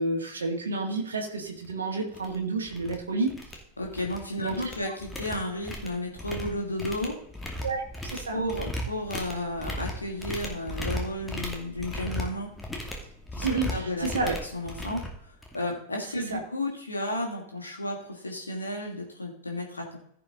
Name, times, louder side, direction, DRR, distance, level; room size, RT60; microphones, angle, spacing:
voice 1, 0.0-3.3 4.4-4.6 4.8-4.9 7.6-8.4 13.4-14.4 16.3-16.4, right 3 dB, 70° right, 1 dB, 2.0 m, -30 dB
sound 1, 1.6-1.7 2.1-2.4 2.6-3.0 3.3-4.2 4.5-15.7, left 1 dB, 10° left, 2.4 m, -36 dB
voice 2, 3.8-7.1 8.3-12.5 13.3-13.5 13.7-14.1 14.4-20.0, left 1 dB, 80° left, 0 dB, 2.7 m, -33 dB
16.0 x 5.8 x 3.8 m, 0.70 s
figure-of-eight pair, 90°, 0 cm